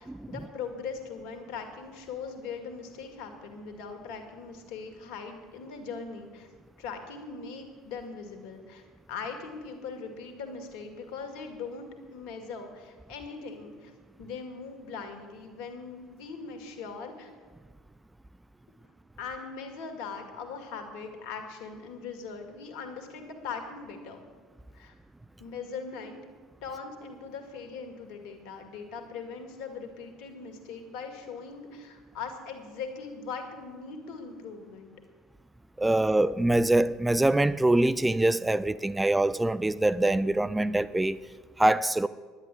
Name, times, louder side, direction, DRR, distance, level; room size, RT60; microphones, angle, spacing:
voice 1, 0.0-6.5 6.8-8.8 9.1-13.9 14.2-17.3 19.2-24.3 24.7-24.9 25.4-26.2 26.6-34.9, left 5 dB, 65° left, 2.1 m, -40 dB
voice 2, 35.8-41.2 41.6-42.1, right 1 dB, 10° right, 0.4 m, -24 dB
10.5 x 10.0 x 7.7 m
hypercardioid pair, 65°, 0 cm